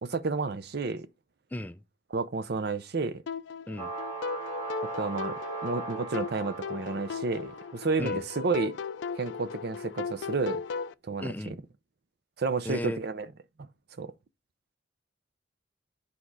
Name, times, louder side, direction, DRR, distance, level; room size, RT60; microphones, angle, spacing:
voice 1, 0.0-1.1 2.1-3.2 5.0-8.8 9.2-10.6 11.0-11.5 12.4-13.3 14.0-14.1, right 4 dB, 60° right, 0.6 m, -31 dB
voice 2, 1.5-1.8 3.7-3.9 8.0-8.2 11.2-11.6 12.7-13.0, left 1 dB, 10° left, 0.4 m, -35 dB
sound 1, 3.3-10.9, left 6 dB, 75° left, 0.4 m, -37 dB
sound 2, 3.8-7.8, right 3 dB, 20° right, 2.3 m, -39 dB
8.7 x 4.2 x 4.7 m
head